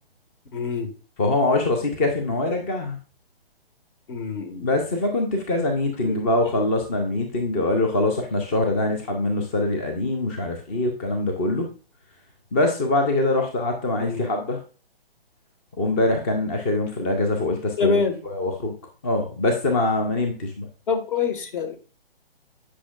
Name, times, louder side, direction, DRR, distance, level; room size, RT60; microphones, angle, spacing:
voice 1, 0.5-0.9 4.1-4.7 6.0-6.3 14.0-14.2 17.8-18.2 20.9-21.8, left 5 dB, 55° left, 7 dB, 1.7 m, -25 dB
voice 2, 1.2-3.0 4.6-11.7 12.5-14.6 15.8-18.7 19.0-20.7, left 2 dB, 15° left, 4 dB, 0.4 m, -23 dB
8.5 x 5.2 x 2.4 m, 0.36 s
hypercardioid pair, 140°, 30 cm